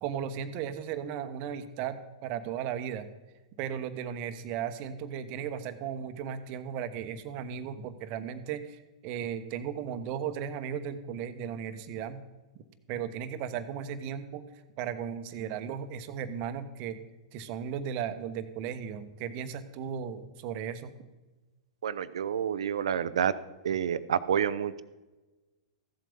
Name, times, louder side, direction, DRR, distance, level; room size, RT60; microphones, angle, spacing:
voice 1, 0.0-3.1 3.6-12.2 12.9-14.4 14.8-17.0 17.3-20.9, right 8 dB, 45° right, 11 dB, 1.0 m, -36 dB
voice 2, 21.8-23.3 23.6-24.8, right 8 dB, 75° right, 15 dB, 0.6 m, -28 dB
15.0 x 7.7 x 5.2 m, 1.2 s
hypercardioid pair, 110°, 3 cm